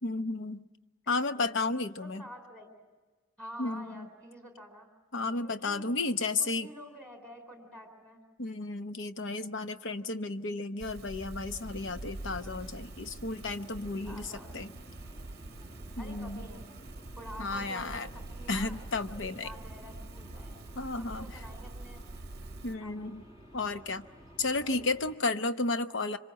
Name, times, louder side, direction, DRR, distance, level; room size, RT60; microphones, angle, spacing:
voice 1, 0.0-0.7 1.1-2.2 3.6-4.1 5.1-6.7 8.4-14.2 14.5-14.7 16.0-16.5 17.4-18.1 18.5-19.5 20.8-21.3 22.6-23.2 23.5-24.1 24.4-26.2, left 3 dB, 60° left, 9 dB, 0.9 m, -33 dB
voice 2, 1.0-1.5 2.0-2.8 3.4-4.9 5.4-5.9 6.4-8.2 14.0-14.7 16.0-16.7 17.2-18.8 19.4-20.6 21.0-22.0 22.8-23.3 24.6-24.9, equal, 5° left, 3 dB, 4.1 m, -48 dB
sound 1, 10.8-22.7, right 2 dB, 50° right, 0.7 m, -45 dB
sound 2, 11.6-25.1, equal, 25° left, 1.9 m, -53 dB
27.0 x 25.5 x 8.1 m, 1.3 s
head